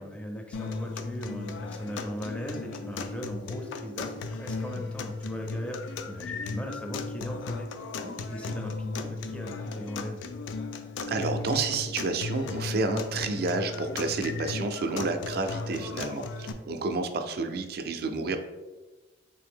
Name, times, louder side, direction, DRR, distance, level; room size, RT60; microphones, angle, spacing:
voice 1, 0.0-10.3 15.6-16.0, equal, 5° left, 2 dB, 0.4 m, -39 dB
sound 1, 0.5-16.5, left 4 dB, 85° left, 0.3 m, -36 dB
voice 2, 11.1-18.4, right 3 dB, 55° right, 7 dB, 0.4 m, -30 dB
3.3 x 2.7 x 3.5 m, 1.2 s
head